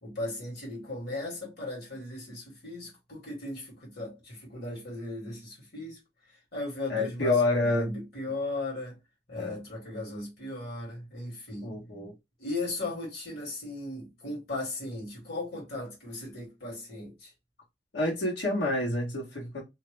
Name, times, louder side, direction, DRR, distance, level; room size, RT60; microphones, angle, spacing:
voice 1, 0.0-6.0 6.3-9.0 9.3-11.7 12.4-17.3, left 2 dB, 60° left, 1.5 m, -37 dB
voice 2, 6.9-7.9 9.4-9.5 11.6-12.1 17.9-19.6, left 2 dB, 80° left, 1.2 m, -28 dB
2.7 x 2.1 x 3.2 m
head